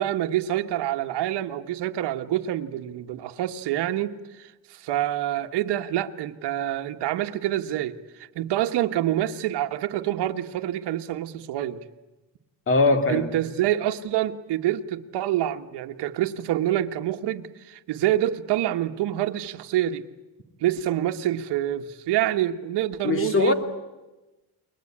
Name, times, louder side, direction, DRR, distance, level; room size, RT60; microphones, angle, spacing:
voice 1, 0.0-11.8 13.1-20.0 20.6-23.5, right 12 dB, 85° right, 6 dB, 1.4 m, -27 dB
voice 2, 12.7-13.4 23.0-23.5, left 3 dB, 30° left, 8 dB, 2.3 m, -21 dB
29.5 x 22.0 x 8.7 m, 1.1 s
cardioid pair, 175°, 40 cm